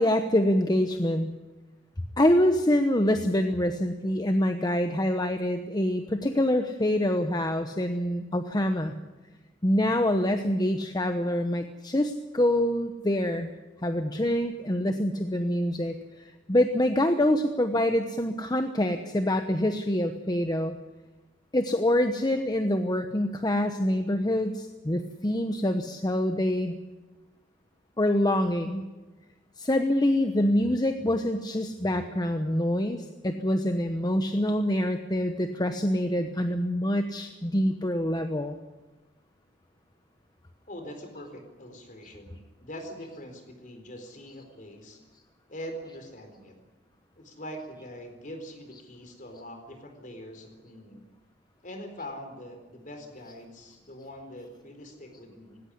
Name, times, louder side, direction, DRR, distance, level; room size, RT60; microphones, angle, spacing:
voice 1, 0.0-1.3 2.2-8.9 9.6-13.5 13.8-20.8 21.5-26.7 28.0-28.8 29.6-38.6, left 1 dB, 20° left, 7 dB, 1.0 m, -25 dB
voice 2, 40.7-45.0 45.5-46.5 47.2-51.1 51.6-55.6, equal, 45° left, 5 dB, 4.4 m, -43 dB
19.0 x 17.0 x 10.0 m, 1.2 s
head